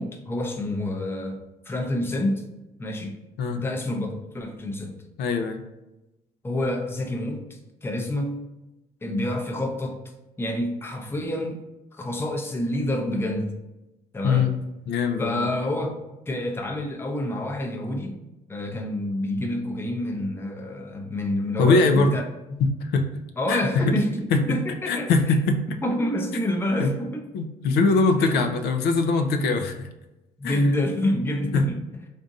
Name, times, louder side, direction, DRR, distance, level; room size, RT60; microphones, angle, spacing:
voice 1, 0.0-1.4 1.7-2.4 2.8-3.1 3.6-5.0 6.4-8.4 9.0-10.0 10.4-11.6 11.9-13.5 14.1-14.5 15.2-16.0 16.3-18.2 18.5-22.2 23.4-25.1 25.8-27.3 28.2-28.4 30.4-31.8, left 1 dB, 15° left, 3 dB, 0.6 m, -28 dB
voice 2, 5.2-5.6 14.2-14.5 14.9-15.5 21.6-22.1 22.6-23.1 23.5-23.6 23.9-24.0 24.3-24.4 24.9-25.6 26.8-26.9 27.3-29.9 30.4-30.7 31.5-31.6, left 3 dB, 75° left, 6 dB, 0.5 m, -22 dB
3.7 x 2.5 x 3.9 m, 0.97 s
cardioid pair, 110°, 17 cm